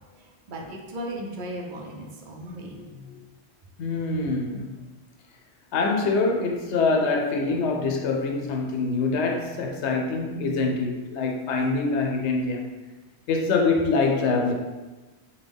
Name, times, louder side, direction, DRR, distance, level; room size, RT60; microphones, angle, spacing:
voice 1, 0.5-2.8, right 1 dB, 60° right, 0 dB, 0.6 m, -36 dB
voice 2, 2.7-3.2 3.8-4.7 5.7-12.7 13.3-14.5, left 3 dB, 85° left, 2 dB, 0.9 m, -25 dB
3.6 x 2.1 x 3.4 m, 1.2 s
omnidirectional pair, 1.1 m